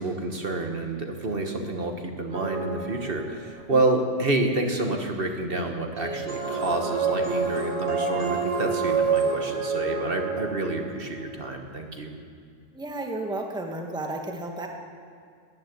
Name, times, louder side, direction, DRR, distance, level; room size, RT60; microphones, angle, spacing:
voice 1, 0.0-12.1, right 2 dB, 50° right, 4 dB, 1.5 m, -28 dB
voice 2, 1.6-1.9 3.7-3.8 12.7-14.7, right 2 dB, 5° right, 2 dB, 1.2 m, -33 dB
sound 1, 2.3-3.7 6.0-11.2, right 5 dB, 65° right, 2.1 m, -28 dB
14.0 x 9.7 x 9.2 m, 2.3 s
omnidirectional pair, 1.3 m